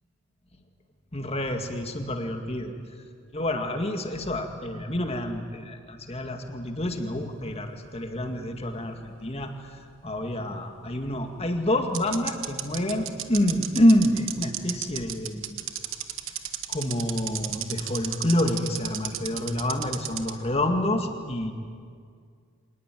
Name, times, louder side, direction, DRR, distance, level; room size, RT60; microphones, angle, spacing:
voice 1, 1.1-2.7 3.3-15.6 16.7-21.5, left 1 dB, 30° left, 5 dB, 2.0 m, -27 dB
sound 1, 7.4-9.0 9.3-9.4 11.2-11.3 11.9-20.3, right 12 dB, 65° right, 1.4 m, -33 dB
25.5 x 19.5 x 9.2 m, 2.1 s
head